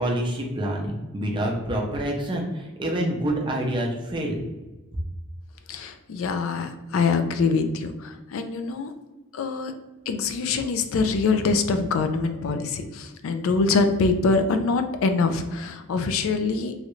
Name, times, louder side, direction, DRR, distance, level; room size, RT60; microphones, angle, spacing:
voice 1, 0.0-4.4, right 1 dB, 20° right, -1 dB, 0.5 m, -27 dB
voice 2, 5.7-8.9 9.3-9.7 10.1-16.8, left 4 dB, 65° left, 7 dB, 0.3 m, -24 dB
3.1 x 2.4 x 3.0 m, 1.1 s
head